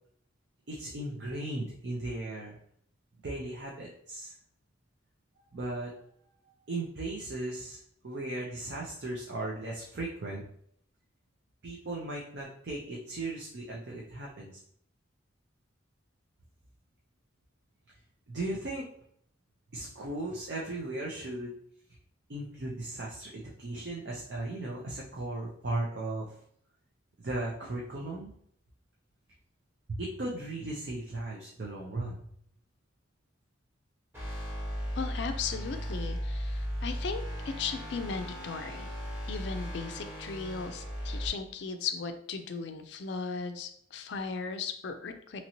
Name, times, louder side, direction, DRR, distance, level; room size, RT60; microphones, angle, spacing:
voice 1, 0.7-2.5 3.2-4.3 5.5-5.9 6.7-10.4 11.6-14.5 18.3-18.9 19.7-21.5 22.3-26.4 27.2-28.3 29.9-32.2, right 2 dB, 55° right, -3 dB, 0.5 m, -37 dB
sound 1, 34.1-41.3, equal, 10° right, 0.9 m, -36 dB
voice 2, 34.9-38.9 39.3-45.4, left 5 dB, 60° left, 7 dB, 0.4 m, -37 dB
2.9 x 2.7 x 2.9 m, 0.66 s
head